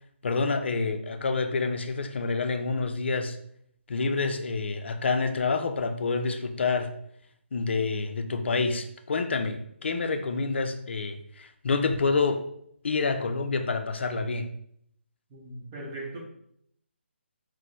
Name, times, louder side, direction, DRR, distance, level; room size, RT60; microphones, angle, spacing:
voice 1, 0.2-3.4 3.9-6.9 7.5-12.5 12.8-14.5, left 4 dB, 65° left, 7 dB, 0.4 m, -28 dB
voice 2, 15.3-16.2, right 2 dB, 25° right, -2 dB, 0.7 m, -39 dB
4.0 x 2.0 x 2.9 m, 0.71 s
figure-of-eight pair, 155°, 7 cm